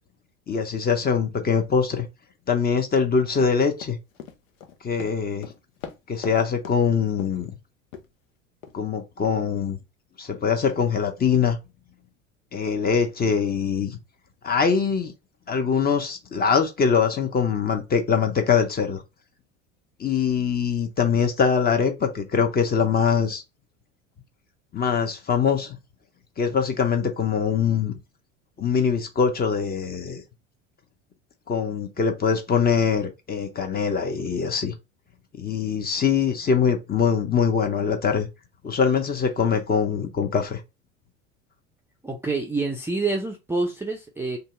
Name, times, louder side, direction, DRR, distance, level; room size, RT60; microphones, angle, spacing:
voice 1, 0.5-2.0 2.5-4.0 4.8-5.5 6.1-7.5 8.7-9.8 10.2-11.6 12.5-14.0 14.4-15.1 15.5-19.0 20.0-23.4 24.7-25.8 26.4-27.9 28.6-30.2 31.5-34.7 35.4-38.3 38.6-40.6, left 6 dB, 25° left, 0.7 m, -23 dB
Run, 3.4-6.4 6.6-6.8 7.2-7.5 7.9-8.1 8.6-8.7, left 7 dB, 85° left, 0.7 m, -39 dB
voice 2, 42.0-44.4, right 3 dB, 5° right, 0.5 m, -27 dB
2.7 x 2.2 x 3.7 m
hypercardioid pair, 80°, 39 cm